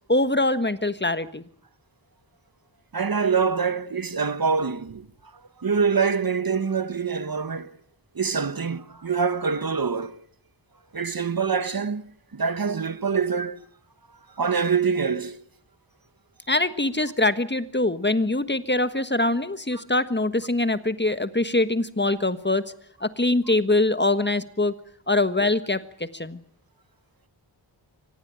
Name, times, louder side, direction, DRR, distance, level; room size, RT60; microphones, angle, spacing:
voice 1, 0.1-1.4 16.5-22.7 23.0-24.7 25.1-25.8 26.1-26.4, left 2 dB, 25° left, 1.4 m, -23 dB
voice 2, 2.9-5.1 5.3-7.8 8.1-10.2 10.9-13.6 14.4-15.4 19.7-19.8, right 5 dB, 50° right, 1.2 m, -25 dB
24.5 x 19.0 x 8.9 m
wide cardioid pair, 50°, 45 cm